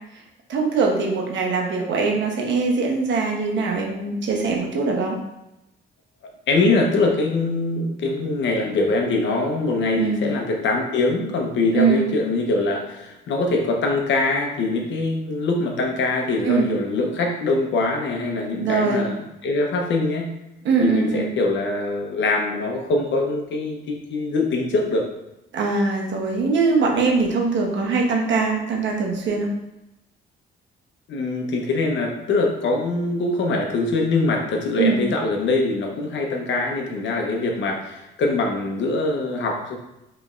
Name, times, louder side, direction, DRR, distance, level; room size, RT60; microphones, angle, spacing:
voice 1, 0.5-5.2 10.0-10.3 11.7-12.1 16.4-16.7 18.5-19.0 20.6-21.3 25.5-29.5 34.8-35.0, right 4 dB, 70° right, 0 dB, 1.0 m, -22 dB
voice 2, 6.5-20.3 20.8-25.0 31.1-39.8, left 3 dB, 70° left, 1 dB, 0.9 m, -23 dB
5.2 x 3.3 x 2.5 m, 0.91 s
cardioid pair, 90°, 20 cm